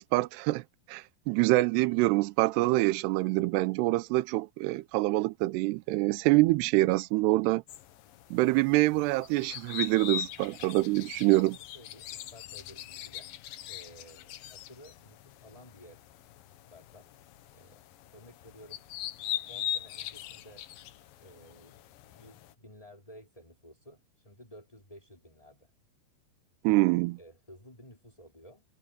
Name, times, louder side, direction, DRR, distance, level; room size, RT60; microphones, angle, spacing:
voice 1, 0.0-7.6 8.3-11.6 26.6-27.2, right 20 dB, 85° right, 2.7 m, -26 dB
sound 1, 7.7-22.5, left 12 dB, 70° left, 2.3 m, -41 dB
voice 2, 11.5-13.3 13.7-16.1 16.5-17.1 17.5-17.8 18.1-18.8 19.5-20.7 21.2-21.8 22.1-25.7 26.6-26.9 27.2-28.6, equal, 10° left, 4.6 m, -54 dB
omnidirectional pair, 4.9 m